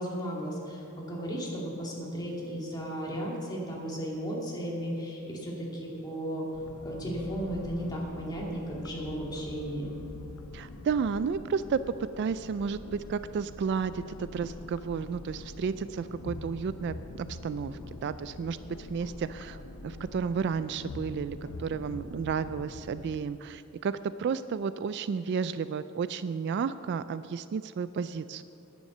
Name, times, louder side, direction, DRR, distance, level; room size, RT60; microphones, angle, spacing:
voice 1, 0.0-6.4 6.8-9.9, equal, 20° left, -4 dB, 2.4 m, -35 dB
sound 1, 6.5-23.2, left 2 dB, 75° left, 0.7 m, -44 dB
voice 2, 10.5-11.8 12.2-28.4, right 6 dB, 55° right, 13 dB, 0.3 m, -32 dB
10.5 x 9.3 x 6.7 m, 2.7 s
head